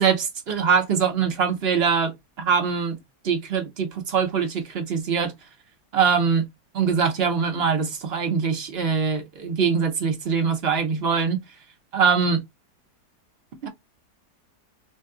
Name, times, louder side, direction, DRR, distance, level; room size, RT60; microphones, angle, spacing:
voice 1, 0.0-2.1 2.4-3.0 3.2-5.3 5.9-6.4 6.7-11.4 11.9-12.4 13.6-13.7, right 6 dB, 50° right, 0.9 m, -23 dB
2.5 x 2.3 x 3.7 m
omnidirectional pair, 1.7 m